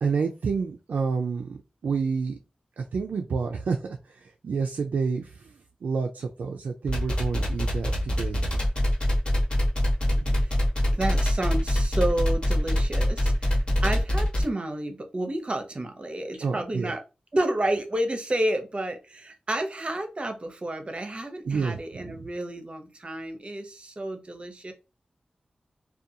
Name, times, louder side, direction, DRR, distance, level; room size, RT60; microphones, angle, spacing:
voice 1, 0.0-2.4 2.8-5.5 5.8-8.4 10.1-10.4 16.4-16.9 21.4-22.2, right 5 dB, 85° right, 3 dB, 0.3 m, -29 dB
sound 1, 6.9-14.4, left 1 dB, 40° left, 1.1 m, -24 dB
voice 2, 10.9-17.0 17.3-24.7, right 1 dB, 40° right, 6 dB, 0.6 m, -30 dB
2.4 x 2.2 x 2.7 m, 0.28 s
cardioid pair, 55°, 3 cm